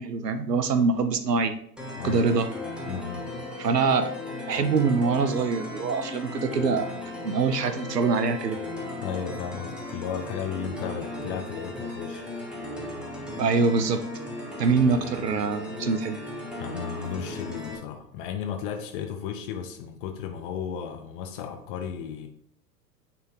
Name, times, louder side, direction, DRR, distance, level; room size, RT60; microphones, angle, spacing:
voice 1, 0.0-1.5 2.0-2.5 3.6-4.1 4.5-6.9 7.2-8.7 13.3-14.1 14.6-16.2, right 4 dB, 80° right, 11 dB, 0.6 m, -24 dB
sound 1, 1.8-17.8, left 2 dB, ahead, 1.0 m, -36 dB
voice 2, 2.0-2.3 2.9-3.3 9.0-12.2 16.6-22.3, left 7 dB, 35° left, 5 dB, 0.6 m, -34 dB
9.2 x 3.4 x 3.2 m, 0.69 s
figure-of-eight pair, 90°, 48 cm